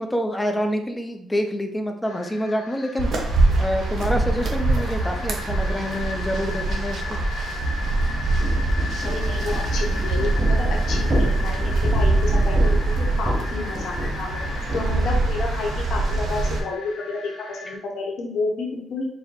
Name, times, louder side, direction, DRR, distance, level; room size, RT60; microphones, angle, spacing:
voice 1, 0.0-7.2, equal, 10° left, 5 dB, 0.7 m, -27 dB
sound 1, 2.0-17.8, left 4 dB, 90° left, 1.6 m, -37 dB
sound 2, 3.0-16.6, right 2 dB, 60° right, 1.0 m, -24 dB
sound 3, 8.4-15.4, right 2 dB, 25° right, 1.2 m, -24 dB
voice 2, 9.0-12.5 13.0-14.4 14.7-19.1, left 3 dB, 65° left, -1 dB, 1.0 m, -30 dB
4.7 x 2.1 x 4.4 m, 0.72 s
cardioid pair, 90°, 0 cm